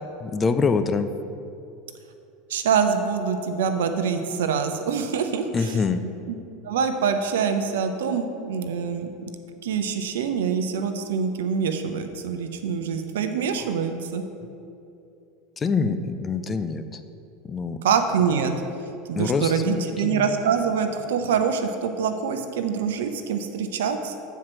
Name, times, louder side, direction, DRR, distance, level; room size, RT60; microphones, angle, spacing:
voice 1, 0.2-1.1 5.5-6.0 15.6-17.0 17.5-17.8 19.2-20.4, left 4 dB, 25° left, 10 dB, 0.4 m, -25 dB
voice 2, 2.5-5.7 6.3-6.4 6.6-9.1 9.6-14.2 17.8-18.5 19.1-24.2, right 6 dB, 75° right, 7 dB, 0.6 m, -25 dB
7.3 x 4.5 x 6.1 m, 2.7 s
hypercardioid pair, 85°, 0 cm